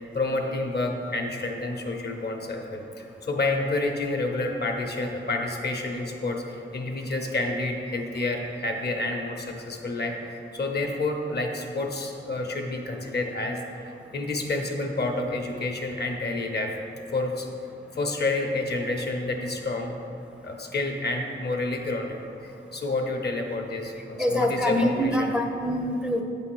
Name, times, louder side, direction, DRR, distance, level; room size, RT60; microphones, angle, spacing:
voice 1, 0.1-13.6 14.1-16.7 17.1-17.5 17.9-20.0 20.4-25.3, left 2 dB, 55° left, 2 dB, 0.8 m, -29 dB
voice 2, 24.2-26.2, equal, 5° right, 1 dB, 0.5 m, -25 dB
8.4 x 3.5 x 6.2 m, 2.6 s
wide cardioid pair, 125°, 21 cm